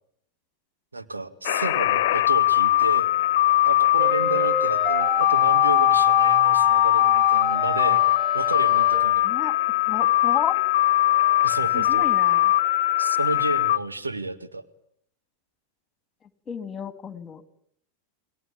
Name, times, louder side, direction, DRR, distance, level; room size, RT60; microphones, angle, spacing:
voice 1, 0.9-3.1 3.7-8.0 8.3-9.3 11.4-12.1 13.0-14.7, right 2 dB, 80° right, 9 dB, 1.9 m, -31 dB
sound 1, 1.4-13.8, left 15 dB, 50° left, 1.3 m, -20 dB
sound 2, 4.0-9.1, left 2 dB, 5° right, 4.4 m, -29 dB
voice 2, 9.2-9.5 9.9-10.6 11.7-12.5 16.5-17.4, left 8 dB, 20° left, 12 dB, 2.4 m, -32 dB
29.5 x 21.5 x 9.0 m, 0.71 s
figure-of-eight pair, 90°, 0 cm